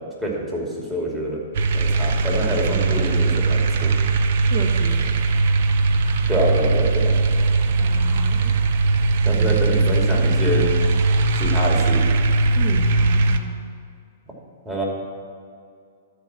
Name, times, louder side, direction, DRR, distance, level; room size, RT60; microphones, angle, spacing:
voice 1, 0.2-1.4 1.7-3.9 6.3-7.1 9.2-10.7 11.4-12.0 14.7-14.8, right 1 dB, 15° right, -4 dB, 2.7 m, -26 dB
sound 1, 1.5-13.4, right 3 dB, 60° right, 0.6 m, -19 dB
voice 2, 4.5-5.3 7.8-8.6 9.3-9.9 12.5-13.6, right 4 dB, 40° right, -1 dB, 1.3 m, -33 dB
12.5 x 4.7 x 7.5 m, 2.2 s
hypercardioid pair, 120°, 0 cm